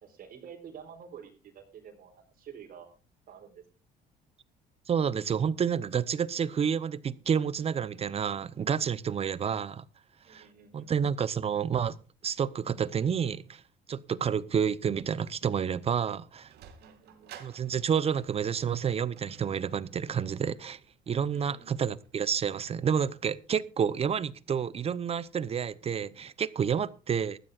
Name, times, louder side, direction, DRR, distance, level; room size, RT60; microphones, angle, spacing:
voice 1, 0.0-2.9 3.3-3.6 10.2-10.9 14.1-14.2 16.8-17.4 21.3-21.9, right 7 dB, 60° right, 4.0 m, -49 dB
voice 2, 4.9-9.8 10.3-10.4 10.7-12.0 12.2-13.6 13.9-16.5 17.4-20.8 21.1-27.4, right 7 dB, 35° right, 0.9 m, -29 dB
Sliding door, 16.3-22.6, right 9 dB, 75° right, 2.6 m, -55 dB
20.0 x 14.5 x 2.5 m
cardioid pair, 110°, 17 cm